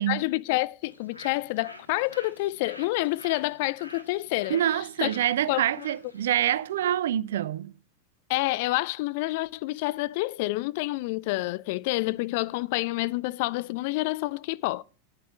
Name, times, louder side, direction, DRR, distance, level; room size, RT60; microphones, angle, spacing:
voice 1, 0.0-5.1 5.5-5.9 8.3-14.8, left 20 dB, 50° left, 0.4 m, -28 dB
Bird, 0.8-7.0, left 1 dB, 85° left, 1.6 m, -49 dB
voice 2, 4.5-7.7, right 11 dB, 60° right, 0.5 m, -26 dB
9.9 x 8.7 x 4.0 m
figure-of-eight pair, 90°, 0 cm